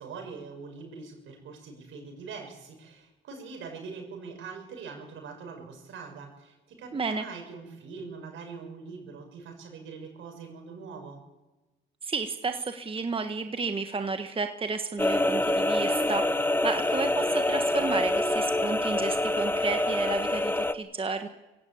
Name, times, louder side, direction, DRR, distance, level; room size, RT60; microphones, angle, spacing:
voice 1, 0.0-11.2, right 5 dB, 80° right, 3 dB, 6.7 m, -43 dB
voice 2, 6.9-7.2 12.0-21.3, right 4 dB, 25° right, 6 dB, 1.4 m, -32 dB
sound 1, 15.0-20.7, left 1 dB, 10° left, 1.0 m, -26 dB
23.5 x 16.5 x 8.7 m, 1.1 s
cardioid pair, 90°, 20 cm